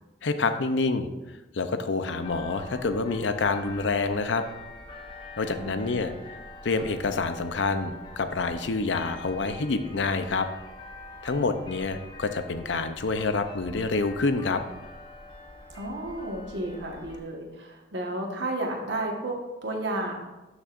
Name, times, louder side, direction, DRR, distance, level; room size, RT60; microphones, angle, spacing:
voice 1, 0.2-1.1 1.5-4.4 5.4-6.1 6.6-10.5 11.2-14.6, left 3 dB, 75° left, 9 dB, 0.6 m, -27 dB
sound 1, 2.2-17.2, left 2 dB, 25° left, 0.9 m, -45 dB
voice 2, 5.5-5.9 15.7-20.1, right 1 dB, 65° right, 1 dB, 1.4 m, -32 dB
12.0 x 6.4 x 2.5 m, 1.1 s
head